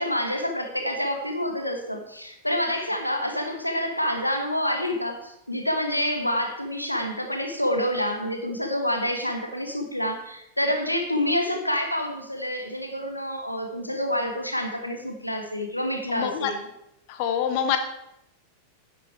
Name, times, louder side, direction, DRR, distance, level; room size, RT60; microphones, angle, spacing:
voice 1, 0.0-16.6, equal, 85° left, 5 dB, 1.4 m, -27 dB
voice 2, 16.1-16.5 17.1-17.8, left 9 dB, 45° left, 7 dB, 0.9 m, -25 dB
10.5 x 7.9 x 4.7 m, 0.82 s
figure-of-eight pair, 90°, 0 cm